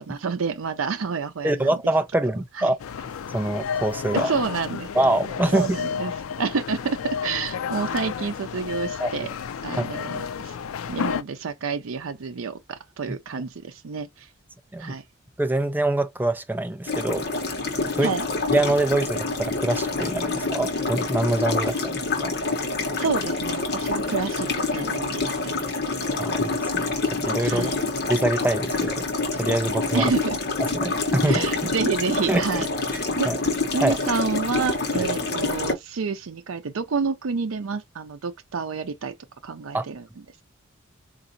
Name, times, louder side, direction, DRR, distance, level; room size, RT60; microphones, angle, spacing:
voice 1, 0.0-1.7 2.6-2.7 4.1-4.9 5.5-6.1 6.4-9.3 9.6-10.6 10.9-14.3 14.8-15.0 18.0-18.2 23.0-26.0 27.4-27.9 29.9-30.4 31.3-32.7 33.2-33.3 33.7-39.1 39.4-40.1, right 5 dB, 80° right, 0.5 m, -29 dB
voice 2, 1.4-2.8 3.3-4.3 5.0-5.6 9.0-9.1 9.8-9.9 14.7-14.9 15.4-17.3 17.9-18.1 18.5-22.3 26.2-26.9 27.2-27.7 28.1-29.0 29.4-30.0 30.7-31.4 32.3-32.6 33.2-33.4 33.8-34.0 35.0-35.1 39.7-39.8, right 1 dB, 10° right, 0.4 m, -24 dB
sound 1, 2.8-11.2, left 7 dB, 85° left, 0.4 m, -31 dB
sound 2, 16.9-35.7, left 3 dB, 50° left, 1.0 m, -27 dB
4.0 x 2.5 x 2.6 m
head